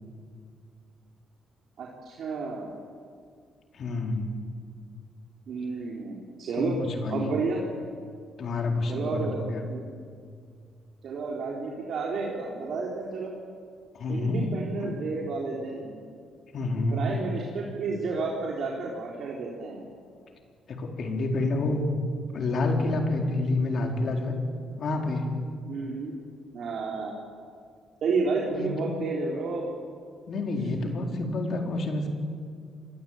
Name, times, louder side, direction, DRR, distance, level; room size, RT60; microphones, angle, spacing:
voice 1, 1.8-2.8 5.5-6.8 7.1-7.6 8.9-9.8 11.0-13.3 14.1-15.9 16.9-19.9 25.7-26.1 26.5-27.2 28.0-29.7 30.7-31.1, right 4 dB, 65° right, -2 dB, 4.1 m, -31 dB
voice 2, 3.7-4.4 6.6-7.3 8.4-9.6 13.9-14.5 14.8-15.0 16.5-17.1 20.7-21.9 22.3-24.4 24.8-25.2 28.5-28.9 30.3-32.1, left 2 dB, 55° left, 3 dB, 4.3 m, -28 dB
26.0 x 21.5 x 8.9 m, 2.1 s
cardioid pair, 90°, 0 cm